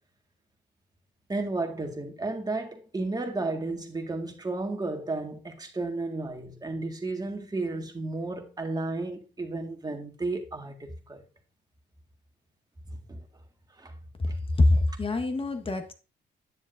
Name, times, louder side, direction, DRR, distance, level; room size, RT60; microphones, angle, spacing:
voice 1, 1.3-11.2 13.1-13.2 13.8-13.9, right 2 dB, 20° right, 1.7 m, -33 dB
voice 2, 14.2-15.9, left 2 dB, 25° left, 1.3 m, -24 dB
9.7 x 7.1 x 2.6 m
cardioid pair, 90°, 20 cm